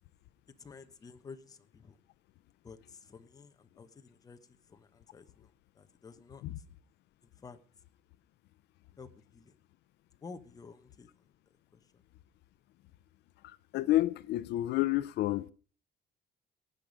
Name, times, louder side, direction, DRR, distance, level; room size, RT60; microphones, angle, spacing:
voice 1, 0.5-2.0 2.6-6.6 7.2-7.6 9.0-9.5 10.2-11.1 11.7-12.0, left 4 dB, 20° left, 1.0 m, -52 dB
voice 2, 13.4-15.5, left 15 dB, 80° left, 0.6 m, -30 dB
19.0 x 8.9 x 5.2 m
cardioid pair, 170°, 17 cm